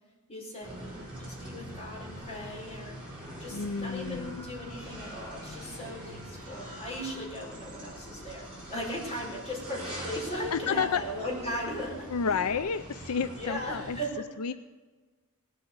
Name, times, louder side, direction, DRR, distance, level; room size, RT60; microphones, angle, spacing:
voice 1, 0.3-3.0 3.4-12.5 13.4-14.2, equal, 30° left, -3 dB, 4.8 m, -38 dB
sound 1, 0.6-14.0, right 1 dB, 5° right, 6.2 m, -43 dB
voice 2, 3.5-4.4 10.5-11.0 12.1-14.0 14.4-14.5, left 6 dB, 75° left, 12 dB, 0.5 m, -30 dB
sound 2, 7.5-13.2, right 2 dB, 75° right, 2.0 m, -53 dB
18.0 x 8.5 x 7.9 m, 1.3 s
head